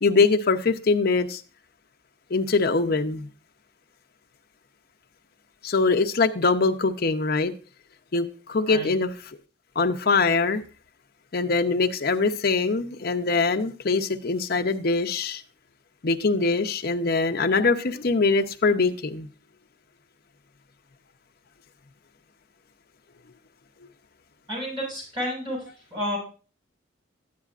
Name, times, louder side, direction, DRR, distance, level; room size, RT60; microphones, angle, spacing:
voice 1, 0.0-1.4 2.3-3.3 5.6-7.5 8.1-9.1 9.8-10.6 11.3-15.4 16.0-19.3, left 4 dB, 50° left, 5 dB, 0.7 m, -23 dB
voice 2, 24.5-25.6 25.9-26.2, equal, 25° right, -5 dB, 6.1 m, -30 dB
12.5 x 9.5 x 2.4 m, 0.37 s
head